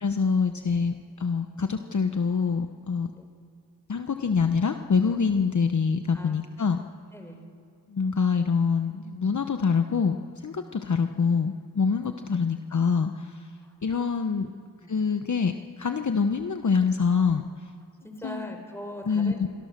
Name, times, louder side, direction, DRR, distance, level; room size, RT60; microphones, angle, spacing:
voice 1, 0.0-3.1 3.9-6.8 7.9-13.5 13.8-14.5 14.9-17.4 18.2-18.5 19.1-19.5, left 5 dB, 45° left, 7 dB, 1.0 m, -25 dB
voice 2, 6.1-6.4 7.1-7.4 10.5-10.6 12.3-12.5 13.6-13.7 14.5-14.9 18.0-19.4, left 1 dB, 5° left, 4 dB, 4.1 m, -41 dB
27.0 x 23.5 x 6.7 m, 2.2 s
wide cardioid pair, 80°, 41 cm